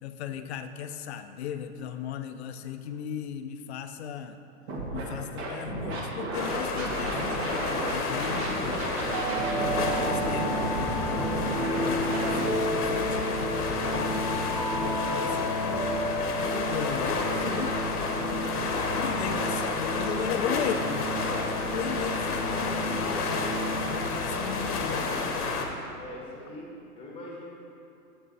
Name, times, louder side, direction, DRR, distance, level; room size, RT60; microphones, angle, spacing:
voice 1, 0.0-4.4 4.9-8.8 10.0-15.8 16.4-18.5 18.9-21.2 21.5-23.5 23.8-25.0, left 8 dB, 50° left, 9 dB, 0.4 m, -37 dB
Scratching (performance technique), 4.7-5.0 5.4-7.9 8.2-12.4, right 2 dB, 45° right, 1.4 m, -33 dB
sound 1, 6.3-25.7, left 3 dB, 90° left, 1.0 m, -31 dB
voice 2, 8.5-9.3 26.0-27.4, left 1 dB, 10° left, -3 dB, 1.1 m, -44 dB
sound 2, 9.0-24.7, equal, 25° right, 0.6 m, -32 dB
7.6 x 7.5 x 2.7 m, 2.7 s
hypercardioid pair, 135°, 45 cm